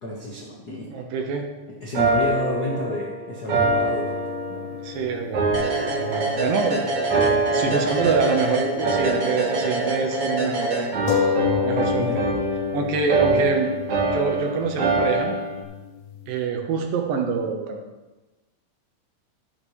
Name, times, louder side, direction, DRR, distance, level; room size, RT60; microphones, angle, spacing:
voice 1, 0.0-0.9 1.7-4.8 5.3-5.6 7.6-7.8 12.0-12.2 13.3-13.4, left 1 dB, 60° left, -3 dB, 1.0 m, -31 dB
voice 2, 0.9-1.5 4.8-6.8 7.1-11.0 11.6-12.1 12.7-13.7 14.0-15.3 16.3-17.8, right 5 dB, 75° right, 3 dB, 2.8 m, -25 dB
sound 1, 1.9-4.9 5.3-6.7 7.1-8.5 8.8-10.5 10.9-15.6, right 3 dB, 55° right, 2.5 m, -25 dB
sound 2, 3.6-7.5 7.7-7.9 11.1-16.3, left 8 dB, 75° left, 2.4 m, -30 dB
sound 3, 5.5-11.3, right 2 dB, 35° right, 1.5 m, -26 dB
12.5 x 11.0 x 3.2 m, 1.1 s
omnidirectional pair, 4.3 m